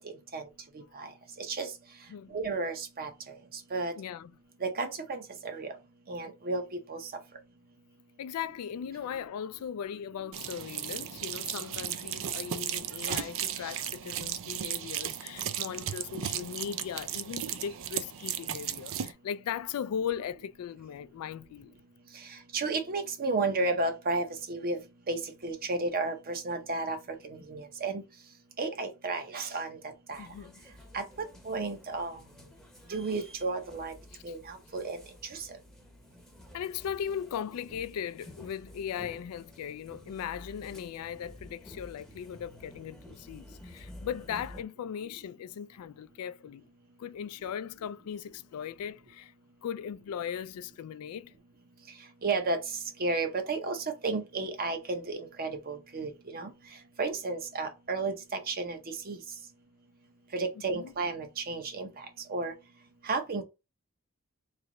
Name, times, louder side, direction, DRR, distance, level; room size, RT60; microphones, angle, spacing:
voice 1, 1.4-1.7 2.3-3.1 3.7-3.9 4.6-5.7 6.1-6.6 6.9-7.0 13.1-13.2 22.5-24.8 25.1-27.0 27.3-28.0 28.6-29.8 30.1-30.2 30.9-31.0 31.4-32.1 32.9-33.9 34.2-35.0 35.3-35.4 52.2-52.6 53.0-53.8 54.0-56.5 57.0-58.8 59.1-59.2 60.3-61.9 62.3-62.5 63.0-63.4, right 3 dB, 45° right, 0.8 m, -32 dB
voice 2, 4.0-4.3 8.2-21.7 30.2-30.5 36.5-46.7 47.0-49.3 49.6-51.3 60.7-60.9, left 8 dB, 80° left, 0.3 m, -38 dB
sound 1, 10.3-19.1, right 10 dB, 65° right, 0.4 m, -35 dB
sound 2, 30.1-44.6, left 1 dB, ahead, 0.8 m, -51 dB
3.3 x 2.9 x 3.9 m
head